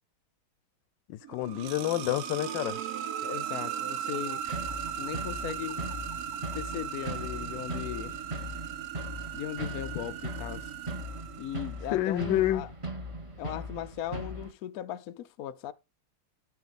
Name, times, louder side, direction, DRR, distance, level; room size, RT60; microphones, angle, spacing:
voice 1, 1.1-2.8 11.9-12.7, left 14 dB, 70° left, 1.2 m, -28 dB
sound 1, 1.2-12.0, right 9 dB, 75° right, 0.8 m, -37 dB
voice 2, 3.2-4.4 5.0-5.9 6.5-8.2 9.3-10.7 11.4-12.7 13.4-15.7, left 11 dB, 90° left, 0.8 m, -38 dB
sound 2, 4.4-14.5, equal, 20° right, 0.8 m, -39 dB
12.5 x 4.8 x 4.1 m
omnidirectional pair, 2.3 m